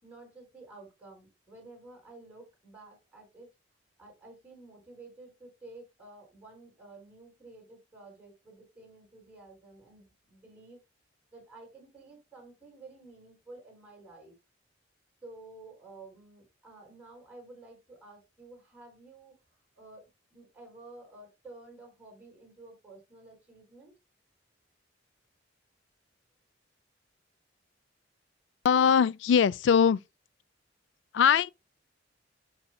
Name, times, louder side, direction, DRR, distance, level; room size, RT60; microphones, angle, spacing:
voice 1, 0.0-3.5 4.0-10.8 11.3-14.3 15.2-19.4 19.7-23.9, right 2 dB, 10° right, 4.9 m, -51 dB
voice 2, 28.6-30.0 31.1-31.5, left 7 dB, 70° left, 0.3 m, -21 dB
11.5 x 6.3 x 2.2 m
head